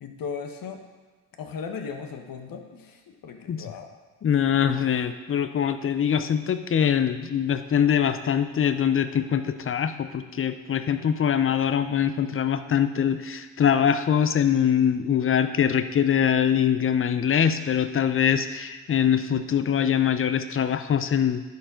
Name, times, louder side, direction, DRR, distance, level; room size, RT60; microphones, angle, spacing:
voice 1, 0.0-0.8 1.4-3.9, left 6 dB, 50° left, 5 dB, 1.2 m, -37 dB
voice 2, 4.2-21.4, left 8 dB, 30° left, 11 dB, 0.6 m, -23 dB
10.5 x 4.8 x 3.9 m, 1.3 s
hypercardioid pair, 60°, 43 cm